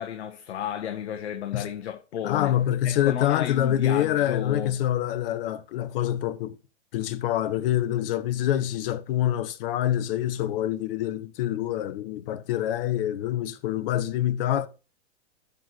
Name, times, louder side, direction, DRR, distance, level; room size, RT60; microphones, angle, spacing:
voice 1, 0.0-2.5 2.8-4.8, left 9 dB, 65° left, 1.6 m, -33 dB
voice 2, 2.2-6.5 6.9-14.7, left 12 dB, 50° left, 1.5 m, -26 dB
13.0 x 4.9 x 6.1 m
hypercardioid pair, 125°, 35 cm